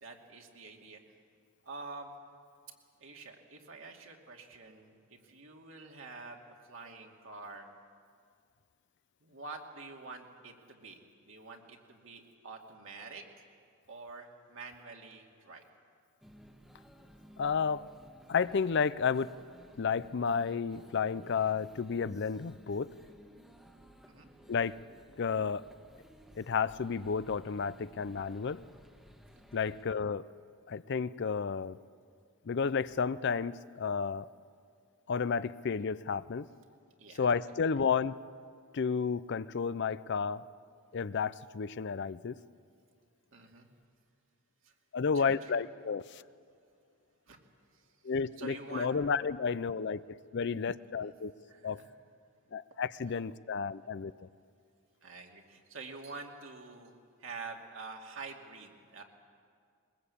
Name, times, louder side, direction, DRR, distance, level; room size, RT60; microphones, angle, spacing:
voice 1, 0.0-1.0 1.6-2.1 3.0-6.4 6.7-7.7 9.2-13.5 13.9-15.6 24.0-24.3 29.5-29.7 37.0-37.8 43.3-43.7 44.6-44.7 45.1-45.7 47.3-47.4 47.7-48.9 51.0-51.1 51.5-51.9 53.0-53.2 55.0-56.9 57.2-59.0, right 3 dB, 65° right, 1 dB, 2.5 m, -47 dB
sound 1, 16.2-29.8, equal, ahead, 1.3 m, -57 dB
voice 2, 17.4-17.9 18.3-19.3 19.8-22.9 24.5-24.8 25.2-25.6 26.4-28.6 29.5-30.2 30.7-31.8 32.5-34.3 35.1-36.5 37.2-38.2 38.7-40.4 40.9-42.4 44.9-46.2 48.0-50.0 50.3-51.3 51.6-51.8 52.5-54.3, left 5 dB, 55° left, 16 dB, 0.5 m, -32 dB
22.0 x 21.0 x 8.4 m, 2.2 s
head